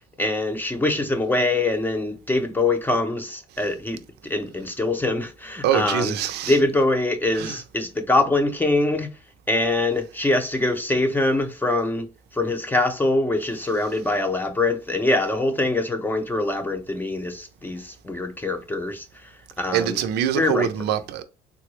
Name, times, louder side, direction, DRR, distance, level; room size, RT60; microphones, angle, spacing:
voice 1, 0.2-6.1 6.5-9.1 9.5-12.1 12.3-19.3 19.6-20.0 20.3-20.7, left 2 dB, 10° left, 0.6 m, -23 dB
voice 2, 5.6-6.5 7.4-7.5 19.7-21.2, right 10 dB, 80° right, 0.5 m, -24 dB
3.7 x 2.0 x 3.1 m
cardioid pair, 110°, 17 cm